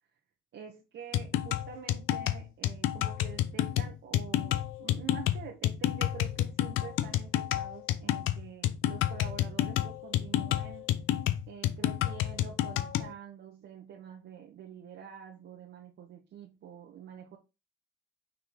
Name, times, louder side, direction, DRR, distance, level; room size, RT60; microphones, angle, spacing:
voice 1, 0.5-10.9 11.5-17.4, right 7 dB, 70° right, 1.3 m, -47 dB
sound 1, 1.1-13.1, left 12 dB, 85° left, 0.6 m, -29 dB
5.5 x 3.8 x 4.8 m
cardioid pair, 90°, 20 cm